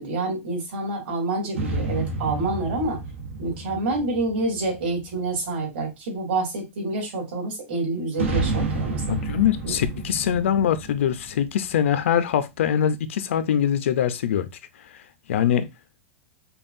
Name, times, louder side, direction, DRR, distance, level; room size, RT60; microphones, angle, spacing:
voice 1, 0.0-3.0 3.4-9.0 9.6-9.8, right 2 dB, 50° right, 2.5 m, -27 dB
sound 1, 1.5-5.2 8.1-11.9, right 3 dB, 80° right, 1.3 m, -30 dB
voice 2, 9.1-14.5 15.3-15.7, left 9 dB, 75° left, 0.5 m, -23 dB
5.4 x 2.3 x 2.6 m
supercardioid pair, 175°, 7 cm